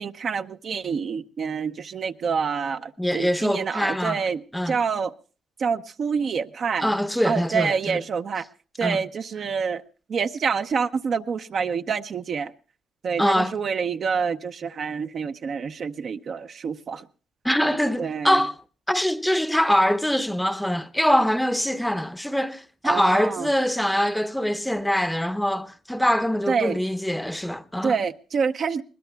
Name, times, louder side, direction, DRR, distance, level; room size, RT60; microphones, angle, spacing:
voice 1, 0.0-4.4 4.7-5.1 5.6-6.9 7.2-8.4 8.8-9.8 10.1-12.5 13.0-17.0 18.0-18.4 22.8-23.5 26.5-26.8 27.8-28.8, right 6 dB, 55° right, 0.8 m, -27 dB
voice 2, 3.0-4.2 4.5-4.8 6.8-8.0 8.8-9.0 13.2-13.6 17.4-18.6 18.9-28.0, equal, 5° left, 0.8 m, -23 dB
21.5 x 20.0 x 2.3 m
cardioid pair, 90°, 0 cm